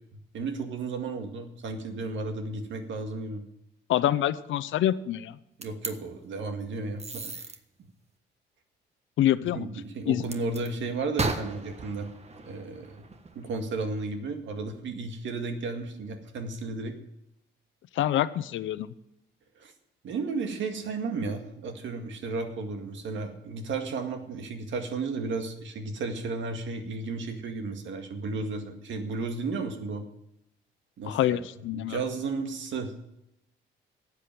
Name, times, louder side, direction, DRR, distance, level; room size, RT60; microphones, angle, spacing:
voice 1, 0.3-3.4 5.6-7.5 9.5-12.1 12.5-13.0 13.4-16.9 19.6-19.7 20.0-30.0 31.0-31.4 31.7-33.1, right 3 dB, 70° right, 5 dB, 2.0 m, -33 dB
voice 2, 3.9-5.4 9.2-9.7 10.1-10.2 18.0-18.9 31.0-32.0, left 12 dB, 75° left, 15 dB, 0.7 m, -26 dB
sound 1, 5.6-5.9 7.0-7.6 10.2-10.7 11.2-13.4, right 3 dB, 30° right, 1.4 m, -35 dB
12.5 x 8.5 x 7.7 m, 0.82 s
cardioid pair, 90°, 20 cm